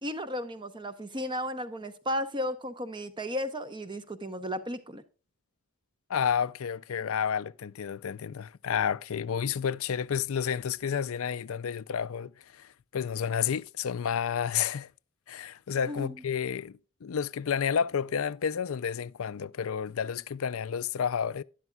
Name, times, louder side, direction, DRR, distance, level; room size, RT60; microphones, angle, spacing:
voice 1, 0.0-5.0 15.8-16.1, equal, 20° right, 0.8 m, -34 dB
voice 2, 6.1-14.9 15.3-21.4, left 7 dB, 70° left, 0.4 m, -31 dB
12.0 x 11.0 x 2.3 m
head